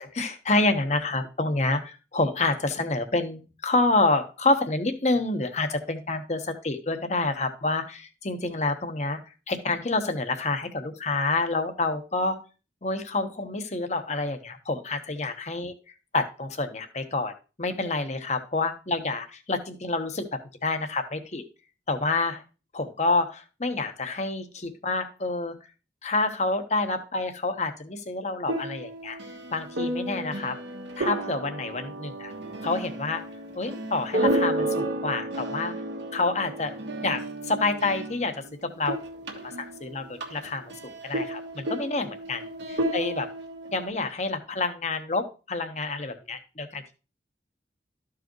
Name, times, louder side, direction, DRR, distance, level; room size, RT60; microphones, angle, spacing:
voice 1, 0.0-12.4 12.8-15.7 16.1-20.3 20.6-21.4 21.9-22.4 22.7-25.6 26.0-29.2 29.5-30.6 31.0-32.3 32.6-33.2 33.5-35.7 36.1-36.7 37.0-39.0 39.4-42.4 42.9-43.3 43.7-46.9, left 3 dB, 40° left, 7 dB, 1.0 m, -28 dB
sound 1, 28.5-38.5 38.8-43.9, right 1 dB, 85° right, 1.5 m, -32 dB
13.0 x 4.9 x 3.0 m, 0.31 s
head